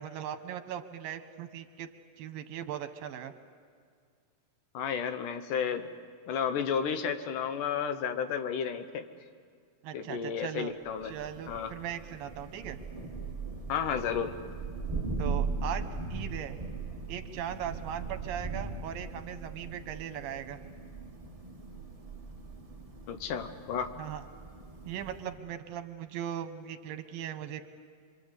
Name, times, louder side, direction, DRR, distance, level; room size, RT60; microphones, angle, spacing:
voice 1, 0.0-1.9 2.2-3.3 9.8-10.7 11.0-12.8 15.2-15.8 16.1-16.6 17.1-20.6 24.0-24.3 24.9-27.7, right 10 dB, 80° right, 9 dB, 2.9 m, -39 dB
voice 2, 4.7-5.9 6.3-9.1 9.9-11.1 11.5-11.7 13.7-14.3 23.1-23.9, left 7 dB, 70° left, 8 dB, 2.6 m, -32 dB
Thunder, 10.9-25.5, right 4 dB, 25° right, 0.8 m, -39 dB
28.0 x 24.0 x 8.2 m, 2.1 s
omnidirectional pair, 4.0 m